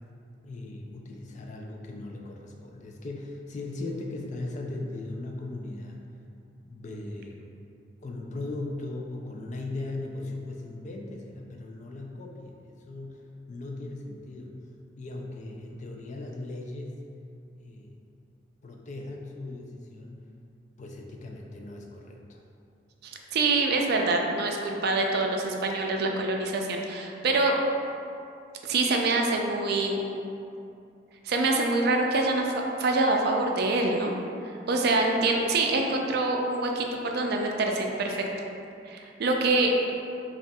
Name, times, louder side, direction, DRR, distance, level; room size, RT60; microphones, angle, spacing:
voice 1, 0.4-6.0 6.6-7.5 8.0-14.5 15.0-17.0 17.5-17.9 18.6-20.2 20.8-22.5, left 2 dB, 40° left, 1 dB, 0.4 m, -38 dB
voice 2, 23.0-27.6 28.6-30.0 31.2-32.5 32.8-34.1 34.7-38.2 38.9-39.7, right 2 dB, 60° right, 1 dB, 0.4 m, -25 dB
5.3 x 2.4 x 2.3 m, 2.6 s
head